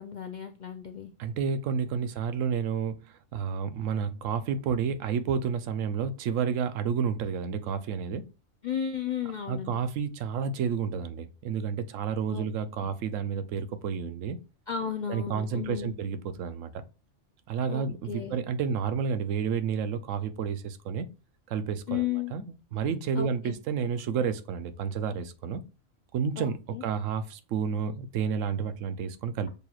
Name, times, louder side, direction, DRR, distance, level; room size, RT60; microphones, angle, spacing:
voice 1, 0.0-1.1 8.6-9.8 12.3-12.5 14.7-16.0 17.7-18.4 21.9-22.3 23.2-23.6 26.4-26.8, left 8 dB, 65° left, 0.4 m, -34 dB
voice 2, 1.2-8.3 9.5-14.4 15.1-16.8 17.5-21.1 21.5-25.6 26.1-29.5, right 6 dB, 80° right, 1.0 m, -30 dB
6.7 x 2.9 x 2.4 m
omnidirectional pair, 1.3 m